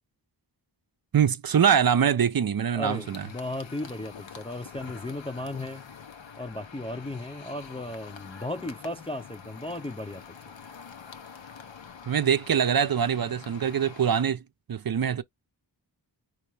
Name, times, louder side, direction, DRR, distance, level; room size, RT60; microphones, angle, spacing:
voice 1, 1.1-3.3 12.1-14.4 14.7-15.2, right 8 dB, 55° right, 0.6 m, -23 dB
voice 2, 2.7-5.9 6.4-10.2, left 1 dB, 15° left, 0.3 m, -35 dB
sound 1, 2.9-14.2, left 6 dB, 80° left, 0.9 m, -46 dB
4.5 x 3.0 x 3.2 m
wide cardioid pair, 70°, 44 cm